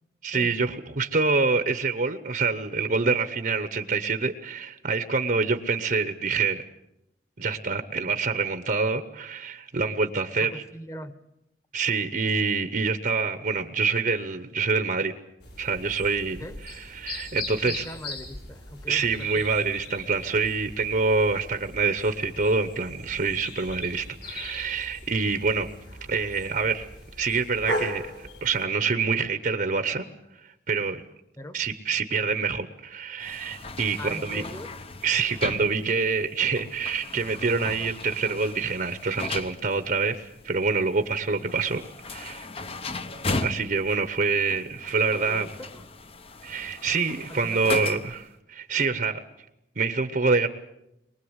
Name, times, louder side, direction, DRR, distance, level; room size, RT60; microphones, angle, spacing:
voice 1, 0.2-6.6 7.4-10.6 11.7-15.1 15.6-17.9 18.9-25.7 26.1-26.9 27.2-30.0 30.4-31.0 31.5-34.4 35.0-41.8 42.1-42.5 43.4-45.5 46.4-48.2 48.5-49.2 49.8-50.5, right 4 dB, 50° right, 10 dB, 0.9 m, -26 dB
voice 2, 10.4-11.2 16.4-16.6 17.6-19.4 31.4-31.6 34.0-34.7 45.2-45.8 47.3-47.9, equal, 15° left, 11 dB, 1.2 m, -40 dB
sound 1, 15.4-28.6, left 1 dB, 65° left, 4.9 m, -39 dB
sound 2, 33.2-48.3, left 3 dB, 30° left, 0.8 m, -37 dB
23.0 x 20.5 x 8.1 m, 0.87 s
head